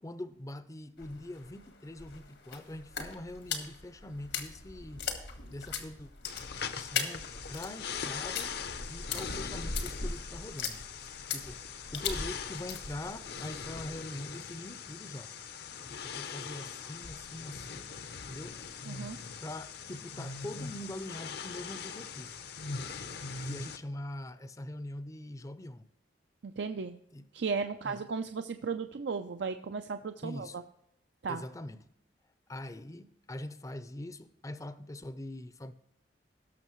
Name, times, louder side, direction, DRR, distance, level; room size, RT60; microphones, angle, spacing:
voice 1, 0.0-5.0 5.5-6.1 6.7-8.6 8.9-10.8 11.3-15.3 15.9-17.9 18.3-18.6 19.4-22.4 23.4-25.9 27.1-27.3 27.8-28.0 30.2-30.6 31.3-31.9 32.5-35.7, left 1 dB, 20° left, 0.5 m, -43 dB
sound 1, 1.0-14.0, left 5 dB, 80° left, 1.6 m, -40 dB
sound 2, 6.2-23.8, left 6 dB, 60° left, 0.7 m, -41 dB
voice 2, 18.9-19.2 26.4-27.0 27.3-30.5 31.2-31.4, right 5 dB, 75° right, 0.5 m, -35 dB
18.0 x 6.6 x 3.1 m
head